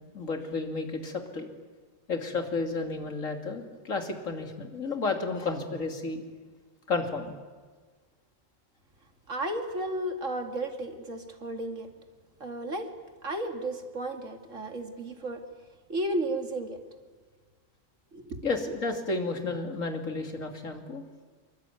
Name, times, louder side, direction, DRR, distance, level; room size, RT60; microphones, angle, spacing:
voice 1, 0.1-1.5 2.1-6.2 6.9-7.3 18.4-21.0, left 3 dB, 75° left, 4 dB, 3.2 m, -32 dB
voice 2, 9.3-11.9 12.4-12.9 13.2-15.4 15.9-16.8 18.1-18.4, right 1 dB, 70° right, 5 dB, 2.8 m, -33 dB
26.5 x 23.0 x 9.3 m, 1.5 s
omnidirectional pair, 1.4 m